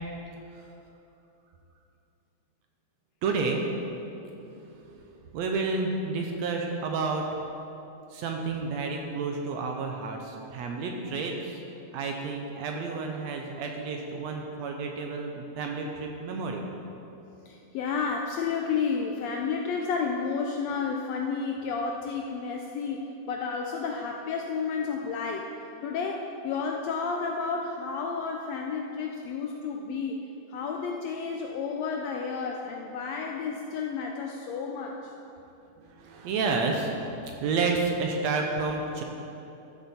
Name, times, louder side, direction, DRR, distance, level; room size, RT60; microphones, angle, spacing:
voice 1, 3.2-3.6 4.4-5.0 5.3-7.3 8.1-11.6 11.9-16.7 35.8-36.9 37.4-39.0, right 4 dB, 75° right, 2 dB, 1.8 m, -30 dB
voice 2, 17.4-25.5 25.8-35.1, left 5 dB, 80° left, 2 dB, 1.5 m, -31 dB
13.0 x 7.1 x 4.3 m, 2.9 s
omnidirectional pair, 3.5 m